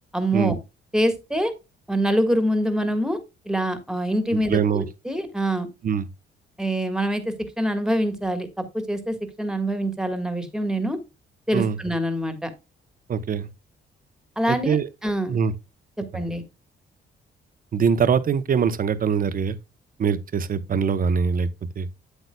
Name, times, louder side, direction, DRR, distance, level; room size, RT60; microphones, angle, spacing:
voice 1, 0.1-0.6 0.9-1.5 1.9-3.2 3.4-5.7 6.6-11.0 11.5-12.5 14.4-15.4 16.0-16.4, right 1 dB, 5° right, 1.6 m, -25 dB
voice 2, 4.3-4.8 5.8-6.0 11.5-11.8 13.1-13.5 14.5-14.9 15.3-15.5 17.7-19.6 20.0-21.5 21.8-21.9, right 6 dB, 45° right, 0.8 m, -23 dB
8.1 x 7.9 x 2.2 m
cardioid pair, 90°, 20 cm